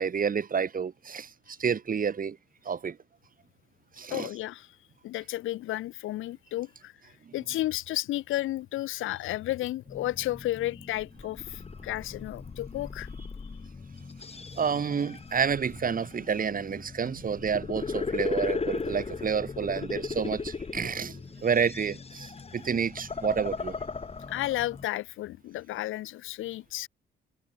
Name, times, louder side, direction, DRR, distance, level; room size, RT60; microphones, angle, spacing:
voice 1, 0.0-2.4 2.7-3.0 4.0-4.3 7.3-7.4 14.5-23.7, right 6 dB, 45° right, 5.7 m, -29 dB
voice 2, 4.1-4.7 5.0-6.9 7.3-13.1 24.3-26.9, left 15 dB, 90° left, 6.0 m, -32 dB
sound 1, 9.9-24.9, left 4 dB, 30° left, 4.4 m, -37 dB
cardioid pair, 90°, 20 cm